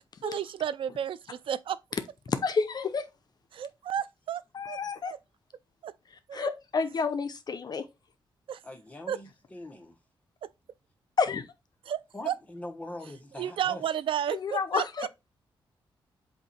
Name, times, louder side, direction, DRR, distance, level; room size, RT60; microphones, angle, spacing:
voice 1, 0.0-1.8 3.5-4.8 5.0-5.2 5.8-5.9 6.3-6.5 8.5-8.6 9.1-9.2 10.4-10.5 11.9-12.4 13.4-15.1, right 9 dB, 75° right, 0.4 m, -32 dB
voice 2, 2.3-3.1 4.5-5.1 6.3-7.8 11.2-11.5 14.4-15.1, left 5 dB, 50° left, 0.8 m, -29 dB
voice 3, 8.6-9.9 12.1-13.8, left 1 dB, 15° left, 1.4 m, -42 dB
8.0 x 2.8 x 4.4 m
cardioid pair, 110°, 9 cm